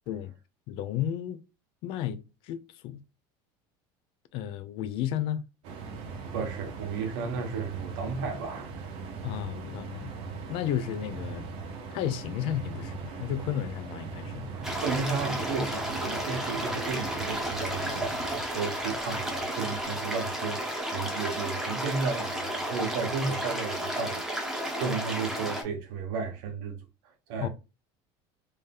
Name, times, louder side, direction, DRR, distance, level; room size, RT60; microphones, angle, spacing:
voice 1, 0.7-1.4 1.8-3.0 4.3-5.4 9.2-10.1 10.5-11.5 11.9-14.5 27.4-27.5, left 10 dB, 55° left, 0.4 m, -33 dB
sound 1, 5.6-18.4, right 4 dB, 55° right, 0.9 m, -40 dB
voice 2, 6.3-8.9 14.5-26.8 27.3-27.5, right 5 dB, 80° right, 1.1 m, -33 dB
sound 2, 14.6-25.6, equal, 5° right, 0.8 m, -33 dB
3.3 x 2.7 x 3.6 m
cardioid pair, 155°, 11 cm